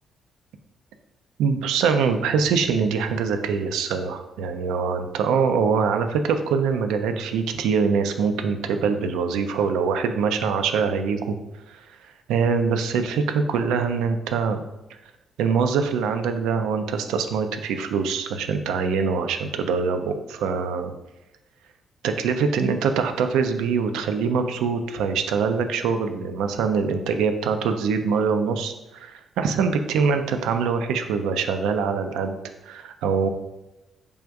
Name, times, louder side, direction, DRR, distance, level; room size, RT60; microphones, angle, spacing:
voice 1, 1.4-11.4 11.7-11.8 12.3-14.6 15.4-20.9 22.0-32.4 32.7-33.3, right 5 dB, 85° right, 7 dB, 0.3 m, -24 dB
3.5 x 2.5 x 4.5 m, 0.95 s
supercardioid pair, 55°, 0 cm